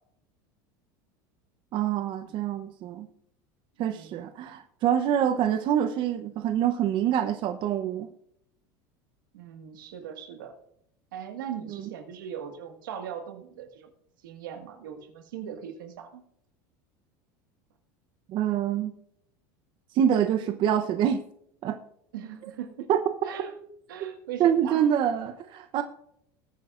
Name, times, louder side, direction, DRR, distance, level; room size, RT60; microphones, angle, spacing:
voice 1, 1.7-3.1 3.8-8.1 11.7-11.9 18.3-19.0 19.9-21.2 21.6-21.8 22.9-23.0 24.4-25.8, right 9 dB, 50° right, 8 dB, 0.8 m, -26 dB
voice 2, 3.8-4.2 9.3-10.5 11.1-13.9 14.2-16.2 22.1-22.9 23.2-23.6 23.9-24.8, right 8 dB, 90° right, 6 dB, 1.7 m, -39 dB
19.5 x 8.8 x 2.5 m, 0.72 s
supercardioid pair, 110°, 11 cm